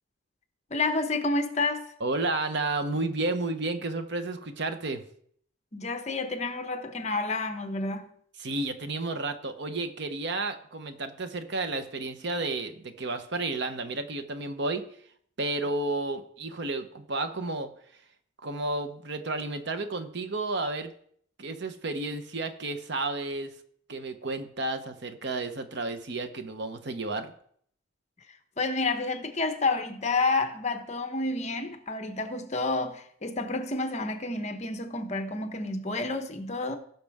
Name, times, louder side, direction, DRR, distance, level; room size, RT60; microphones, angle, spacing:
voice 1, 0.7-1.9 5.7-8.1 28.6-36.8, left 3 dB, 35° left, 0.9 m, -29 dB
voice 2, 2.0-5.0 8.4-14.8 15.4-17.7 18.4-20.9 21.4-23.5 23.9-27.3, right 2 dB, 60° right, 0.9 m, -32 dB
17.0 x 6.0 x 3.5 m
head